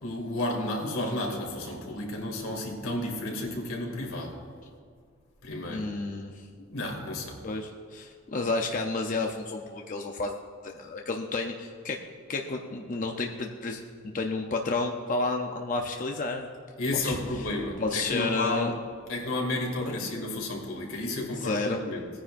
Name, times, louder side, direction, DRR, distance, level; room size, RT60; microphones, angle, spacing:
voice 1, 0.0-4.4 5.4-5.9 6.6-7.4 16.8-18.7 19.1-22.1, left 1 dB, 85° left, 0 dB, 2.5 m, -32 dB
voice 2, 5.7-6.5 7.4-10.4 10.6-12.0 12.3-13.8 14.1-16.5 16.9-17.2 17.8-18.7 19.8-20.0 21.4-21.8, left 3 dB, 40° left, 2 dB, 0.6 m, -31 dB
18.5 x 9.9 x 2.6 m, 2.2 s
head